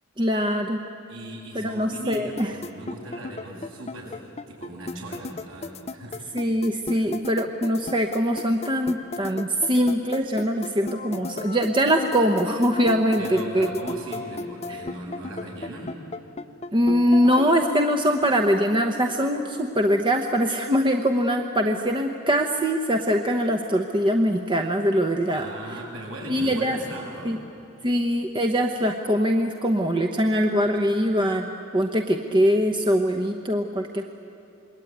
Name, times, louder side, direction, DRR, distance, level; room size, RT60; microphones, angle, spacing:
voice 1, 0.2-0.8 1.5-2.5 6.3-13.7 14.7-14.8 16.7-25.5 26.3-26.8 27.2-27.4 27.8-34.0, equal, 25° right, 4 dB, 0.9 m, -22 dB
voice 2, 1.1-4.2 4.5-6.2 6.9-7.1 13.2-16.0 25.3-27.4, right 1 dB, 65° right, -2 dB, 7.8 m, -38 dB
sound 1, 2.1-17.7, left 3 dB, 30° left, 0.7 m, -34 dB
26.5 x 21.5 x 9.3 m, 2.8 s
head